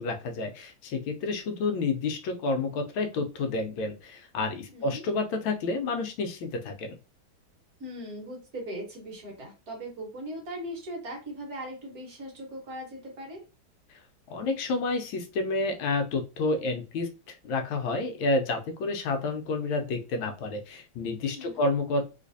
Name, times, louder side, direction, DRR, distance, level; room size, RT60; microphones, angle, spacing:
voice 1, 0.0-7.0 14.3-22.1, left 3 dB, 80° left, 6 dB, 1.3 m, -30 dB
voice 2, 4.7-5.0 7.8-13.4 21.3-21.6, equal, 50° right, 0 dB, 1.5 m, -39 dB
3.2 x 3.1 x 2.6 m, 0.31 s
omnidirectional pair, 2.2 m